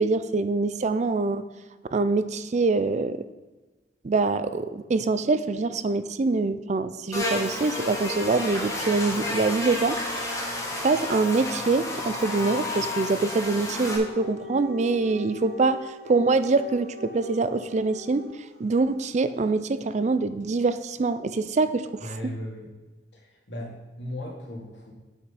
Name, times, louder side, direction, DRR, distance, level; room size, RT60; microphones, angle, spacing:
voice 1, 0.0-1.4 1.9-3.2 4.0-10.0 10.7-18.3 18.6-21.9 22.2-22.3, right 3 dB, 40° right, 12 dB, 0.4 m, -24 dB
Buzz, 7.1-14.0, left 2 dB, 20° left, 2.0 m, -31 dB
Dog, 13.4-18.6, left 4 dB, 60° right, 1.3 m, -42 dB
voice 2, 22.0-22.7 23.1-24.9, left 1 dB, 70° left, -2 dB, 2.5 m, -37 dB
8.0 x 5.9 x 5.7 m, 1.2 s
head